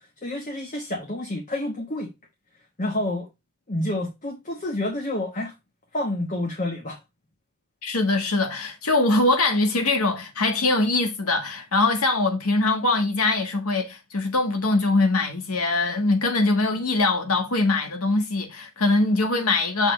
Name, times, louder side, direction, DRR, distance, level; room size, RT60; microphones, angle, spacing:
voice 1, 0.2-2.1 2.8-3.3 3.7-5.5 5.9-7.0, left 1 dB, 35° left, 1.1 m, -28 dB
voice 2, 7.8-19.9, left 2 dB, 75° left, 1.6 m, -22 dB
6.4 x 3.6 x 4.4 m
head